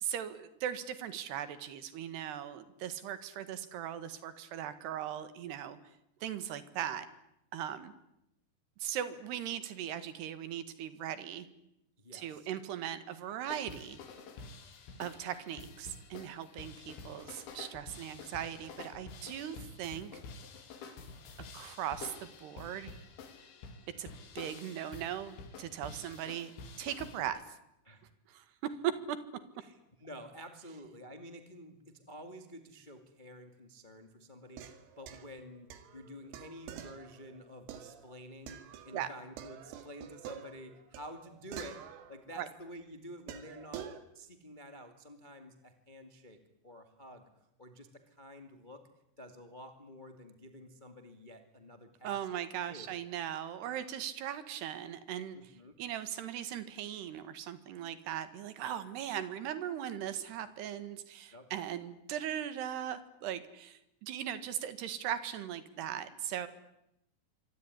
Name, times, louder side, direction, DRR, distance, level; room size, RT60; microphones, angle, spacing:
voice 1, 0.0-5.8 6.2-7.1 7.5-7.9 8.8-11.5 12.1-14.0 15.0-20.2 21.5-22.9 24.0-26.5 26.8-27.4 28.3-28.4 28.8-29.2 38.9-39.1 42.4-42.5 52.0-55.5 55.8-66.5, right 10 dB, 65° right, 12 dB, 3.5 m, -39 dB
voice 2, 12.0-12.5 27.8-28.0 29.6-41.8 42.1-46.4 46.6-47.3 47.6-48.8 49.2-52.2 52.7-52.9 55.3-55.8 61.3-61.5, equal, 90° left, 6 dB, 0.4 m, -50 dB
sound 1, 13.5-27.2, left 4 dB, 70° left, 5.2 m, -49 dB
sound 2, 34.5-39.1 39.4-42.6 43.3-44.0, right 9 dB, 80° right, 4.4 m, -48 dB
26.0 x 23.0 x 9.8 m, 0.85 s
omnidirectional pair, 5.6 m